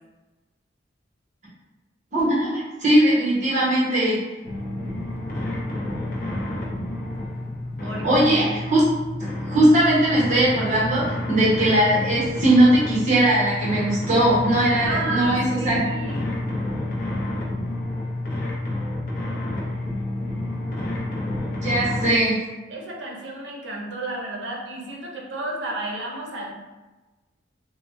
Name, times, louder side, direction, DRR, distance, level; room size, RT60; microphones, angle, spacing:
voice 1, 2.1-4.2 7.8-8.8 9.5-15.9 21.6-22.4, right 1 dB, 40° right, -7 dB, 0.9 m, -19 dB
sound 1, 4.4-22.1, left 1 dB, 45° left, 0.5 m, -29 dB
voice 2, 7.8-8.6 14.8-16.3 21.7-21.8 22.7-26.5, right 2 dB, 75° right, -1 dB, 0.6 m, -32 dB
3.2 x 2.1 x 2.5 m, 1.1 s
head